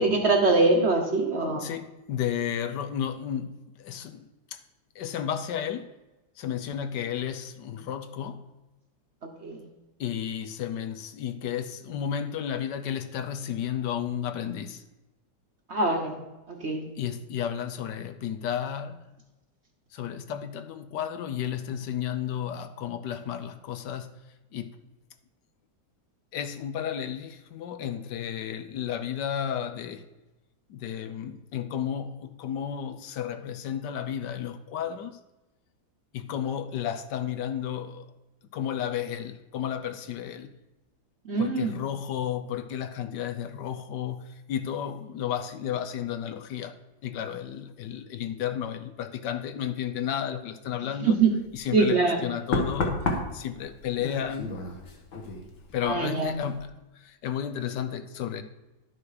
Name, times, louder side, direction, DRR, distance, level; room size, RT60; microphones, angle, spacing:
voice 1, 0.0-1.7 9.4-9.6 15.7-16.1 16.5-16.9 41.3-41.8 51.0-51.4 51.7-52.2 55.8-56.3, right 3 dB, 45° right, 1.0 m, -23 dB
voice 2, 1.5-4.6 4.9-5.9 6.4-8.5 10.0-14.8 17.0-19.0 19.9-24.2 24.5-24.8 26.3-30.0 30.7-35.2 36.1-38.1 38.5-40.5 41.4-46.8 47.0-51.2 51.5-54.5 55.7-58.4, left 9 dB, 75° left, 1.3 m, -33 dB
Knock, 51.5-51.7 52.5-56.0 56.3-56.7, left 2 dB, 50° left, 1.5 m, -32 dB
11.5 x 6.0 x 4.9 m
omnidirectional pair, 2.0 m